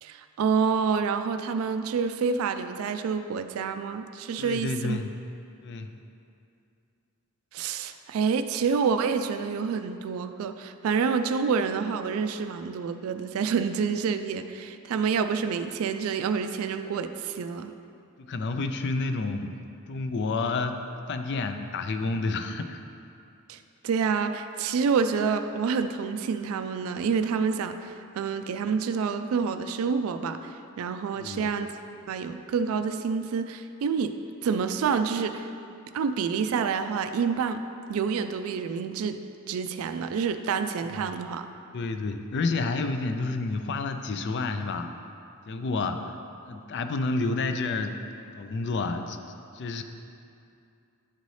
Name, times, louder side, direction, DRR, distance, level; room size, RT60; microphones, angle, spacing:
voice 1, 0.0-5.0 7.5-17.7 23.5-31.7 32.1-35.5 35.9-37.6 37.9-39.2 39.5-41.5, right 6 dB, 70° right, 9 dB, 0.3 m, -28 dB
voice 2, 4.4-5.2 5.6-5.9 18.2-19.6 19.9-22.8 31.1-31.5 41.7-44.9 45.5-46.1 46.5-48.0 48.3-49.2 49.5-49.8, left 3 dB, 55° left, 7 dB, 0.4 m, -30 dB
10.5 x 4.0 x 3.2 m, 2.5 s
head